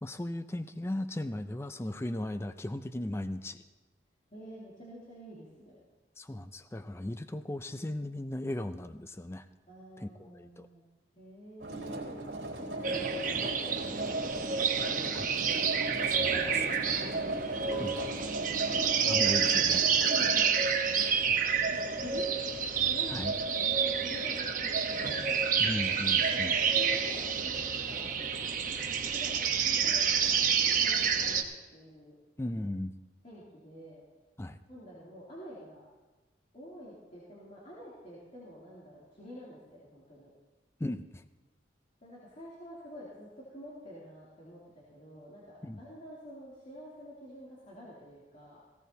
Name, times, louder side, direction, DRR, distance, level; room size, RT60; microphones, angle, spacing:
voice 1, 0.0-3.6 6.2-9.5 10.0-10.7 15.1-15.3 15.8-16.5 17.8-18.0 19.1-20.1 23.1-23.3 25.6-26.5 32.4-33.0 34.4-34.6 40.8-41.2 45.6-45.8, left 1 dB, 15° left, 10 dB, 0.4 m, -37 dB
voice 2, 4.3-5.8 9.7-10.9 11.1-12.2 12.6-15.0 16.2-17.4 18.2-18.6 19.0-19.2 20.1-22.3 22.9-25.3 26.3-28.3 29.1-32.1 33.2-34.0 34.7-35.8 36.5-40.3 42.0-48.6, equal, 40° left, -8 dB, 2.9 m, -48 dB
sound 1, 11.6-20.3, right 2 dB, 70° right, 3.7 m, -38 dB
sound 2, 12.8-31.4, right 6 dB, 45° right, 0.9 m, -29 dB
sound 3, 14.3-24.5 24.8-29.0, left 5 dB, 65° left, 2.5 m, -53 dB
18.0 x 16.5 x 2.8 m, 1.2 s
head